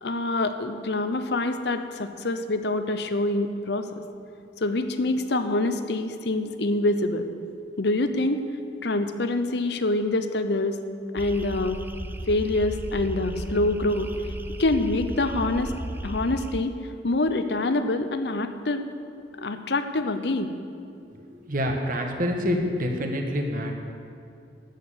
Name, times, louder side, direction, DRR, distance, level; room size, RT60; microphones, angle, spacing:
voice 1, 0.0-4.0 4.6-7.3 7.8-8.4 8.8-10.8 11.1-11.8 12.3-14.1 14.6-15.7 16.0-16.8 17.0-18.9 19.4-20.5, left 2 dB, 65° left, 8 dB, 0.8 m, -25 dB
sound 1, 11.2-16.6, right 1 dB, 10° right, 0.5 m, -35 dB
voice 2, 21.1-23.7, equal, 50° right, 3 dB, 1.5 m, -27 dB
13.0 x 6.7 x 8.6 m, 2.5 s
head